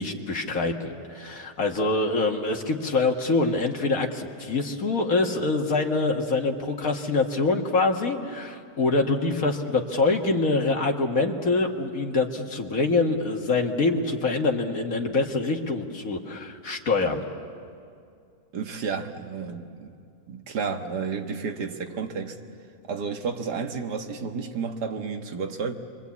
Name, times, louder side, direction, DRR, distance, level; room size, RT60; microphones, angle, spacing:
voice 1, 0.0-17.2, left 3 dB, 60° left, 1.9 m, -25 dB
voice 2, 18.5-19.9 20.3-22.4 22.9-25.7, right 5 dB, 85° right, 2.0 m, -31 dB
29.0 x 23.5 x 8.4 m
omnidirectional pair, 1.7 m